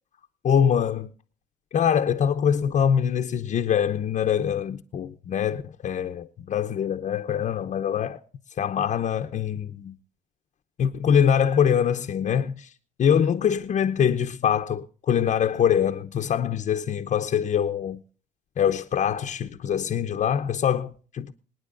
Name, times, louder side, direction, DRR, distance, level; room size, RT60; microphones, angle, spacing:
voice 1, 0.4-1.1 1.7-8.2 8.6-10.0 10.8-12.7 13.0-18.0 18.6-21.3, left 8 dB, 45° left, 0.8 m, -24 dB
26.5 x 9.3 x 2.5 m
cardioid pair, 110°, 17 cm